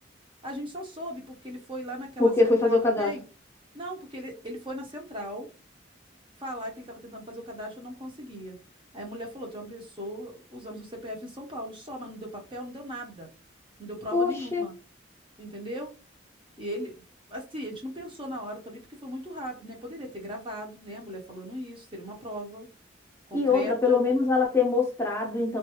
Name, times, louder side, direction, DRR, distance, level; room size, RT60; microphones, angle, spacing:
voice 1, 0.4-3.2 3.7-5.5 6.4-8.6 8.9-13.3 13.8-14.7 15.4-16.0 16.6-17.0 17.3-22.7 23.3-24.0, equal, 25° right, 1 dB, 0.7 m, -38 dB
voice 2, 2.2-3.1 14.1-14.6 23.3-25.6, left 3 dB, 15° left, -1 dB, 0.6 m, -23 dB
3.7 x 2.3 x 2.8 m, 0.33 s
head